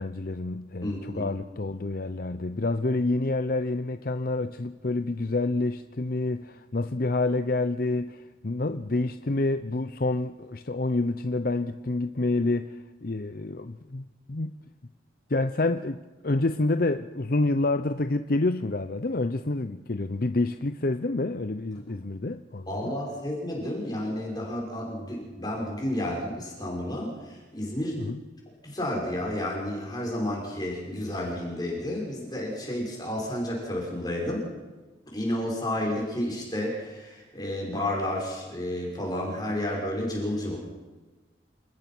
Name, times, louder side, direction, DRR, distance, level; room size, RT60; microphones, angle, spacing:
voice 1, 0.0-14.5 15.3-22.9 28.0-28.2, left 2 dB, 50° left, 0.7 m, -28 dB
voice 2, 0.8-1.3 22.7-28.0 28.6-34.5 35.1-40.6, left 1 dB, 20° left, 6.4 m, -31 dB
28.0 x 20.5 x 6.2 m
head